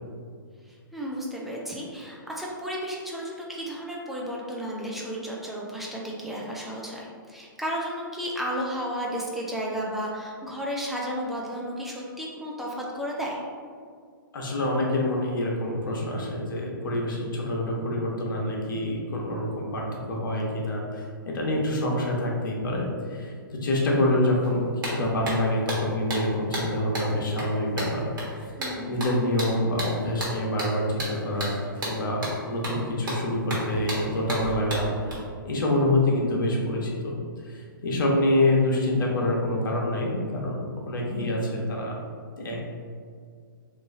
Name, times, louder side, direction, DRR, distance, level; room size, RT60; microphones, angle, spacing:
voice 1, 0.7-13.4 28.6-29.0, equal, ahead, -4 dB, 0.5 m, -33 dB
voice 2, 14.3-23.3 23.6-28.1 28.8-31.6 31.8-35.2 35.4-37.1 37.4-42.0 42.4-42.6, left 1 dB, 65° left, -1 dB, 0.9 m, -26 dB
sound 1, 24.4-24.5 24.8-35.1, right 1 dB, 65° right, 1.4 m, -33 dB
3.0 x 2.6 x 3.6 m, 2.1 s
hypercardioid pair, 130°, 12 cm